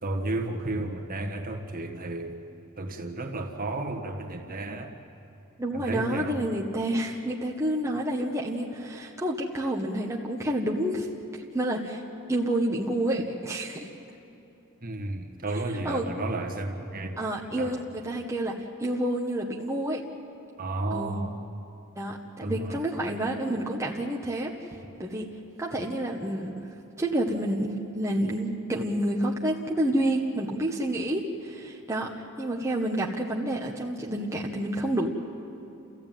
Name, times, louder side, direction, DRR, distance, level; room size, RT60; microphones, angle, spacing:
voice 1, 0.0-2.4 2.8-4.9 5.7-6.4 14.8-17.2 17.6-17.8 20.6-21.4 22.4-22.8, right 2 dB, 40° right, 3 dB, 1.7 m, -32 dB
voice 2, 5.6-11.1 11.5-12.0 12.3-13.9 15.8-16.3 17.2-18.5 18.8-20.0 20.9-21.2 22.0-24.5 25.0-25.2 25.6-32.1 32.4-35.1, right 1 dB, 15° right, -2 dB, 1.2 m, -29 dB
30.0 x 14.5 x 9.1 m, 2.8 s
head